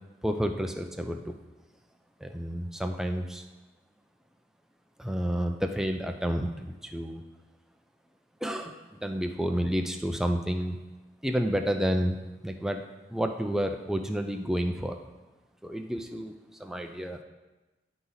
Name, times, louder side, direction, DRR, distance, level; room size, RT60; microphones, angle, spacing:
voice 1, 0.2-1.3 2.2-3.4 5.0-7.2 8.4-10.8 11.2-12.8 13.1-15.0 15.6-16.3 16.6-17.2, equal, 5° right, 5 dB, 0.4 m, -30 dB
11.0 x 4.0 x 3.9 m, 1.1 s
head